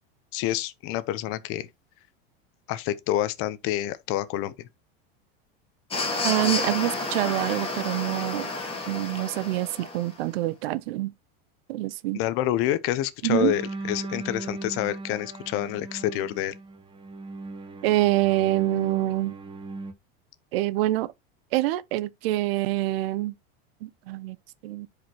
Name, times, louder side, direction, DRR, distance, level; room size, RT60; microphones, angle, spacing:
voice 1, 0.3-1.7 2.7-4.5 12.1-13.6 13.9-16.5, left 13 dB, 45° left, 0.8 m, -27 dB
sound 1, 5.9-10.1, left 3 dB, 20° left, 2.2 m, -30 dB
voice 2, 6.2-8.5 8.9-11.1 11.7-12.2 13.2-13.5 17.8-19.3 20.5-21.1 21.5-23.3 23.8-24.4 24.6-24.9, right 16 dB, 75° right, 0.7 m, -26 dB
sound 2, 13.4-19.9, right 3 dB, 15° right, 1.0 m, -38 dB
10.0 x 5.1 x 2.9 m
supercardioid pair, 145°, 30 cm